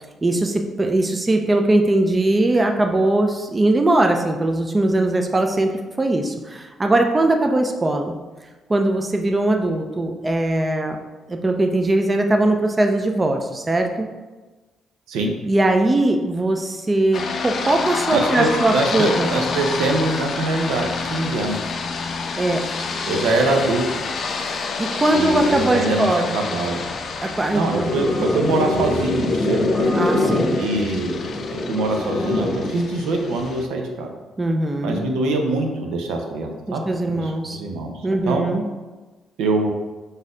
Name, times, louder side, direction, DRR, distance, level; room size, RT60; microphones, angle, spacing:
voice 1, 0.2-5.7 6.0-8.1 8.7-11.0 11.3-14.1 15.5-19.3 22.4-22.7 24.8-26.3 27.2-27.9 29.9-30.6 34.4-35.0 36.7-37.6 38.0-38.6, right 2 dB, 25° right, 4 dB, 0.5 m, -20 dB
sound 1, 17.1-33.7, left 4 dB, 55° left, 0.5 m, -29 dB
voice 2, 18.1-21.6 23.0-24.1 25.1-26.9 27.5-29.6 30.6-31.2 31.5-34.1 34.8-36.8 37.1-37.9 38.2-38.4 39.4-39.7, right 2 dB, 90° right, 3 dB, 0.6 m, -23 dB
sound 2, 27.8-32.8, left 2 dB, 25° left, 0.9 m, -23 dB
4.0 x 2.7 x 4.8 m, 1.2 s
cardioid pair, 90°, 0 cm